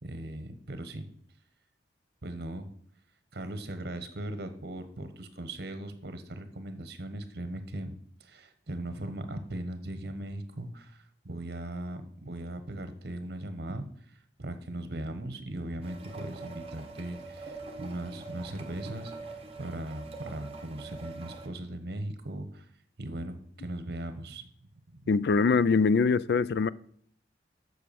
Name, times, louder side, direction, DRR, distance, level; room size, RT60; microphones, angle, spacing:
voice 1, 0.0-1.1 2.2-2.7 3.3-7.9 8.2-22.7 23.0-24.5 24.9-25.0, right 1 dB, 60° right, 1.1 m, -39 dB
sound 1, 15.8-21.5, right 3 dB, 35° right, 1.4 m, -44 dB
voice 2, 25.1-26.7, left 4 dB, 60° left, 0.3 m, -23 dB
7.8 x 6.4 x 6.9 m
head